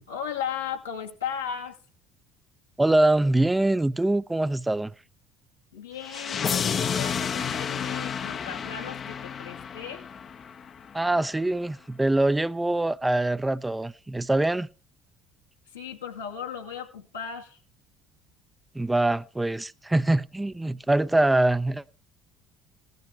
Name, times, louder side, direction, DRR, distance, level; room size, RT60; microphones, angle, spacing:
voice 1, 0.0-1.8 5.7-10.1 15.7-17.6, left 8 dB, 85° left, 2.2 m, -36 dB
voice 2, 2.8-4.9 10.9-14.7 18.7-21.8, right 2 dB, 10° right, 0.6 m, -24 dB
sound 1, 6.0-11.0, left 7 dB, 40° left, 0.8 m, -31 dB
17.0 x 12.0 x 3.3 m
figure-of-eight pair, 60°, 0 cm